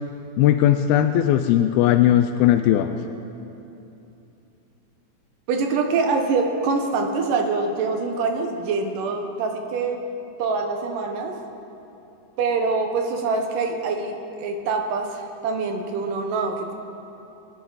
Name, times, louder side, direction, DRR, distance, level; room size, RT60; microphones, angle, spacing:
voice 1, 0.4-3.0, left 11 dB, 85° left, 6 dB, 2.3 m, -18 dB
voice 2, 5.5-10.0 10.4-11.4 12.4-16.7, right 4 dB, 70° right, 4 dB, 2.4 m, -25 dB
26.5 x 9.3 x 4.0 m, 2.9 s
omnidirectional pair, 4.4 m